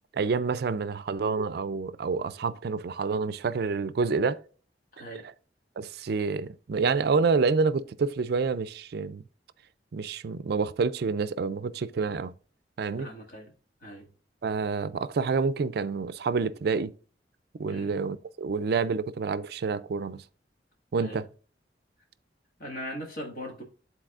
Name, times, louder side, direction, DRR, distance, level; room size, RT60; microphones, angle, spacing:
voice 1, 0.1-4.4 5.8-9.2 9.9-12.3 12.8-13.1 14.4-16.9 17.6-20.2 20.9-21.3, right 4 dB, 60° right, 0.4 m, -28 dB
voice 2, 4.9-5.3 13.0-13.5 13.8-14.1 17.7-17.9 21.0-21.3 22.6-23.6, equal, 55° left, 2.0 m, -40 dB
11.5 x 4.0 x 2.5 m
head